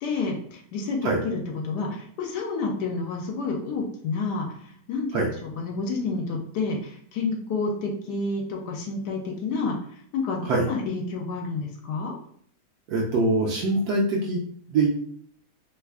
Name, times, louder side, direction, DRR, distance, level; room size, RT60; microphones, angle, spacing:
voice 1, 0.0-12.1, left 3 dB, 85° left, 1 dB, 1.2 m, -30 dB
voice 2, 12.9-14.4 14.7-14.9, right 2 dB, 75° right, -2 dB, 1.1 m, -23 dB
3.1 x 2.4 x 3.4 m, 0.63 s
omnidirectional pair, 1.7 m